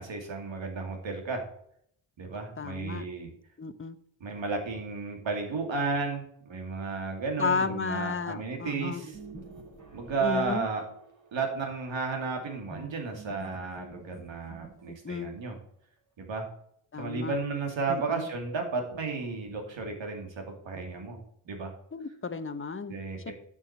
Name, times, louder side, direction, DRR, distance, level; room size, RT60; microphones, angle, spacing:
voice 1, 0.0-1.4 2.2-3.3 4.2-9.2 9.9-10.8 11.3-15.6 16.2-16.5 17.0-21.2 21.5-21.7 22.9-23.3, right 4 dB, 75° right, 3 dB, 2.5 m, -33 dB
voice 2, 2.6-3.1 3.6-4.0 7.4-9.0 10.2-10.7 14.9-15.3 16.9-17.4 17.9-18.3 21.9-23.0 23.3-23.4, left 5 dB, 25° left, 12 dB, 0.8 m, -33 dB
sound 1, 8.7-11.3 12.7-15.1, right 2 dB, 40° right, 3.3 m, -47 dB
7.4 x 6.4 x 5.8 m, 0.68 s
cardioid pair, 60°, 46 cm